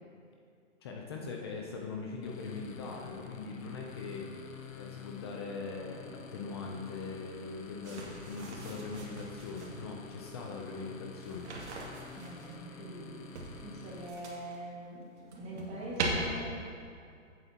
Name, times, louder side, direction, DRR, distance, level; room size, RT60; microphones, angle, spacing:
voice 1, 0.8-4.3 4.8-11.5, left 4 dB, 20° left, 1 dB, 0.5 m, -41 dB
sound 1, 2.2-14.1, left 5 dB, 90° left, 1.0 m, -49 dB
sound 2, 7.8-9.8 11.2-12.5 13.3-14.6 15.0-16.1, right 4 dB, 60° right, 2.3 m, -41 dB
voice 2, 12.1-15.1 15.4-16.6, right 1 dB, 15° right, -5 dB, 1.7 m, -43 dB
15.5 x 8.2 x 2.9 m, 2.3 s
hypercardioid pair, 150°, 39 cm